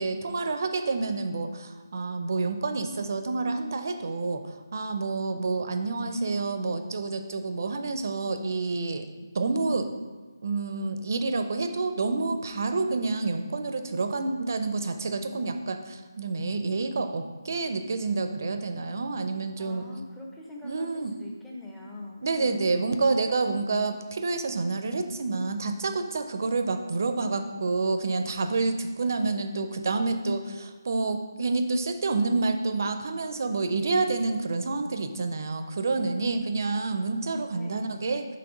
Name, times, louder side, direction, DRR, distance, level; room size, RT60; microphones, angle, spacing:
voice 1, 0.0-9.0 9.3-10.0 10.4-19.9 20.6-21.1 22.2-38.3, right 3 dB, 50° right, 8 dB, 0.5 m, -28 dB
voice 2, 19.6-20.9 21.2-23.0 35.9-36.5 37.5-37.9, left 2 dB, 5° left, -4 dB, 0.5 m, -42 dB
5.8 x 3.2 x 5.0 m, 1.4 s
figure-of-eight pair, 165°, 2 cm